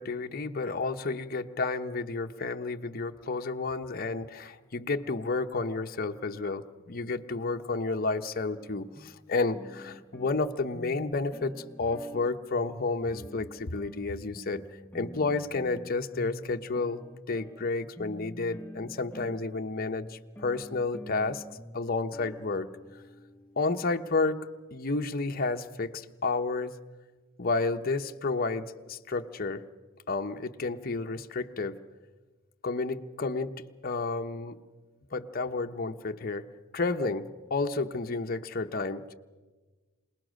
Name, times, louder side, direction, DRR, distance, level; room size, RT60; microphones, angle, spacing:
voice 1, 0.0-14.6 14.9-17.0 17.3-21.4 21.7-22.7 23.6-26.7 27.4-29.6 30.1-31.8 32.6-34.6 35.1-36.5 36.7-39.1, left 3 dB, 45° left, 6 dB, 0.8 m, -31 dB
sound 1, 8.6-24.8, equal, 10° left, 0.7 m, -47 dB
27.0 x 19.0 x 6.4 m, 1.3 s
head